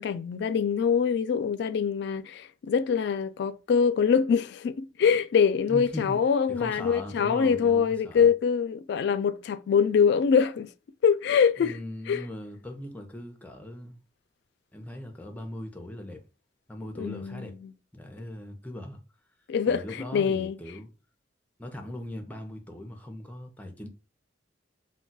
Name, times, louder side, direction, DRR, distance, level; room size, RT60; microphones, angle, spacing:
voice 1, 0.0-10.7 11.0-11.7 12.1-12.2 17.0-17.7 19.5-19.8 20.1-20.6, left 6 dB, 65° left, 0.3 m, -24 dB
voice 2, 5.7-6.2 6.5-8.3 11.6-14.0 14.7-16.2 16.7-17.6 17.9-19.0 19.7-20.9 21.6-23.9, left 1 dB, 10° left, 0.6 m, -39 dB
2.3 x 2.2 x 3.9 m
head